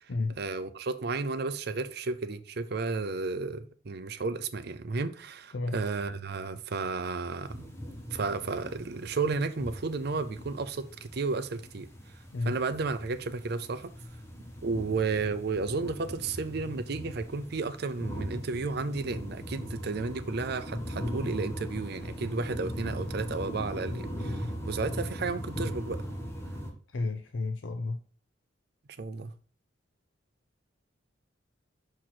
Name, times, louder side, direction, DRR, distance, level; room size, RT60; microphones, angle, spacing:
voice 1, 0.4-7.7 8.1-11.9 12.4-13.9 14.6-26.0 29.0-29.3, right 4 dB, 55° right, 0.6 m, -33 dB
sound 1, 7.4-26.7, equal, 15° left, 1.2 m, -39 dB
voice 2, 26.9-28.0, left 3 dB, 80° left, 0.6 m, -31 dB
6.2 x 4.3 x 4.3 m
head